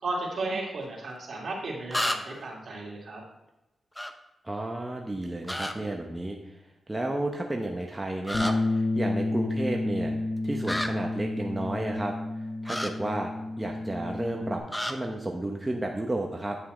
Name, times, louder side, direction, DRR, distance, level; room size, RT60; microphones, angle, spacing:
voice 1, 0.0-3.2, right 2 dB, 60° right, -3 dB, 2.6 m, -34 dB
sound 1, 0.8-0.9 1.9-2.5 4.0-4.1 5.4-5.7 8.2-8.5 10.6-10.9 12.7-12.9 14.7-14.9, left 1 dB, 10° left, 0.8 m, -30 dB
voice 2, 4.4-6.6 6.9-10.1 10.4-12.1 12.6-13.3 13.6-16.6, right 1 dB, 20° right, 1 dB, 1.0 m, -32 dB
Bass guitar, 8.3-14.6, left 2 dB, 35° left, 0.9 m, -30 dB
9.6 x 5.6 x 3.9 m, 0.94 s
cardioid pair, 65°, 0 cm